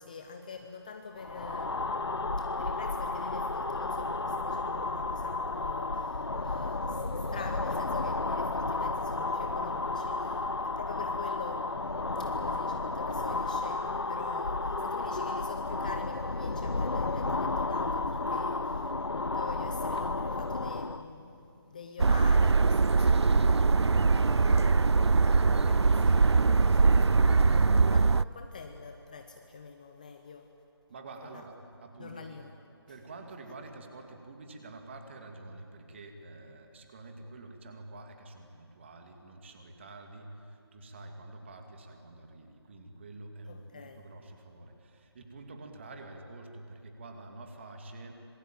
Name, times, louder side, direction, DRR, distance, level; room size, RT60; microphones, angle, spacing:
voice 1, 0.0-30.5 31.3-31.4 32.0-32.5 43.5-44.0, left 5 dB, 20° left, 6 dB, 0.7 m, -46 dB
sound 1, 1.2-21.1, left 3 dB, 70° left, 1.1 m, -32 dB
Yachts in the wind - Marina Kornati Biograd na Moru II, 1.5-18.4, right 3 dB, 45° right, 3.3 m, -52 dB
sound 2, 22.0-28.2, right 4 dB, 75° right, 0.5 m, -22 dB
voice 2, 30.9-32.3 32.9-48.3, right 2 dB, 25° right, 4 dB, 2.5 m, -47 dB
26.0 x 22.5 x 9.0 m, 2.7 s
figure-of-eight pair, 165°, 14 cm